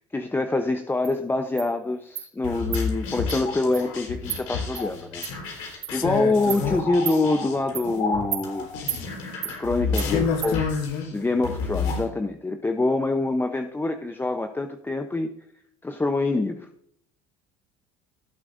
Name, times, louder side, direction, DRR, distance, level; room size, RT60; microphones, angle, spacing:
voice 1, 0.1-5.2 5.6-8.7 9.4-10.6 11.1-15.3 15.8-16.7, left 2 dB, 15° left, 0.8 m, -25 dB
Insect, 1.0-1.1 1.6-1.7 2.1-2.3 2.7-2.8 3.3-3.4 3.7-3.8 4.3-4.4 4.7-4.8 5.2-5.3 5.8-5.9 6.5-6.6 7.0-7.2 7.7-7.9 8.3-8.4 8.9-9.0 9.4-9.5 10.0-10.1 10.4-10.5, right 10 dB, 55° right, 4.3 m, -31 dB
sound 1, 2.4-12.0, left 4 dB, 85° left, 4.3 m, -31 dB
voice 2, 5.9-6.8 10.0-11.1, left 6 dB, 65° left, 1.6 m, -27 dB
17.0 x 8.1 x 2.6 m
supercardioid pair, 85°, 16 cm